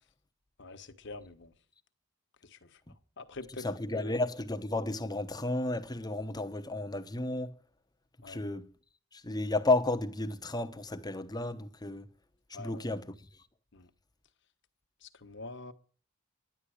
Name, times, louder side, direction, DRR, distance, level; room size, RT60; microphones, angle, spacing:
voice 1, 0.6-1.5 2.4-2.8 3.2-3.7 3.9-4.1 8.2-8.4 12.5-12.9 13.7-13.9 15.0-15.7, left 3 dB, 60° left, 1.3 m, -45 dB
voice 2, 3.6-7.5 8.2-8.7 9.1-12.1 12.5-13.2, left 2 dB, 20° left, 0.9 m, -32 dB
11.0 x 10.0 x 6.4 m
head